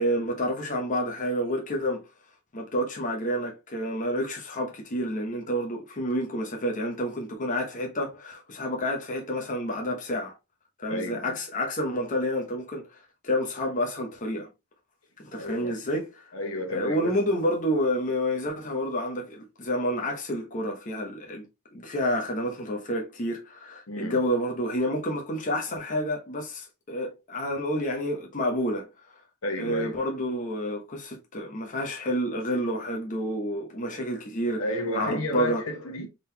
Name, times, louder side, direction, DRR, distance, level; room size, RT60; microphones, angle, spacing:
voice 1, 0.0-2.1 2.5-10.4 10.8-14.5 15.2-16.3 16.7-21.4 21.7-28.9 29.6-34.6 34.9-35.6, equal, 35° left, 0.9 m, -29 dB
voice 2, 10.9-11.4 15.4-15.7 16.3-17.1 23.9-24.2 29.4-30.1 34.6-36.1, left 1 dB, 70° left, 1.1 m, -32 dB
3.9 x 3.7 x 2.7 m
head